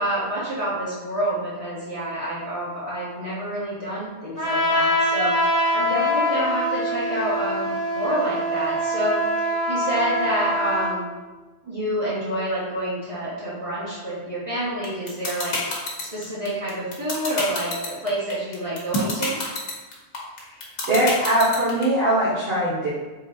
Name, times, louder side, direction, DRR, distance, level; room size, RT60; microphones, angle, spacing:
voice 1, 0.0-5.3 5.7-7.7 7.9-11.0 11.6-15.8 16.1-19.4, right 1 dB, 35° right, -10 dB, 1.0 m, -28 dB
Trumpet, 4.4-11.0, equal, 35° left, 1.2 m, -24 dB
sound 1, 14.8-21.8, left 2 dB, 85° left, 1.3 m, -27 dB
voice 2, 20.9-22.9, right 1 dB, 60° right, -10 dB, 1.1 m, -21 dB
3.8 x 3.8 x 2.7 m, 1.2 s
omnidirectional pair, 1.2 m